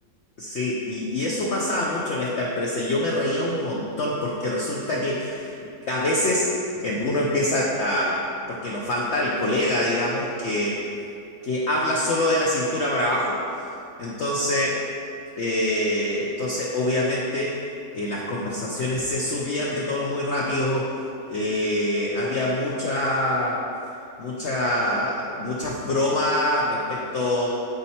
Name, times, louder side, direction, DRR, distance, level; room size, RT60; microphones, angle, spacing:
voice 1, 0.4-5.5 5.8-6.5 6.8-10.8 11.4-13.4 14.0-14.8 15.4-17.6 17.9-20.9 21.3-23.6 24.2-27.6, left 1 dB, 60° left, -4 dB, 0.7 m, -25 dB
7.9 x 4.2 x 4.2 m, 2.6 s
omnidirectional pair, 1.8 m